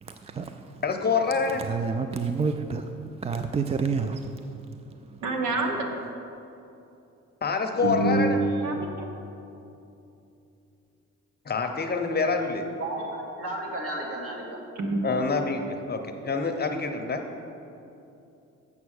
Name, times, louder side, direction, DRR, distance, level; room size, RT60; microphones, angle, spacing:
voice 1, 0.0-0.6 1.6-4.7 5.1-5.2, right 5 dB, 20° right, 7 dB, 0.3 m, -30 dB
voice 2, 0.8-1.6 7.4-8.4 11.5-12.7 15.0-17.2, left 4 dB, 30° left, 5 dB, 0.8 m, -26 dB
voice 3, 5.2-5.8 7.8-9.1 14.8-15.0, right 2 dB, 70° right, 3 dB, 1.3 m, -26 dB
voice 4, 12.8-14.6, right 1 dB, 50° right, -1 dB, 2.1 m, -33 dB
7.0 x 6.9 x 6.5 m, 2.8 s
cardioid pair, 90°, 30 cm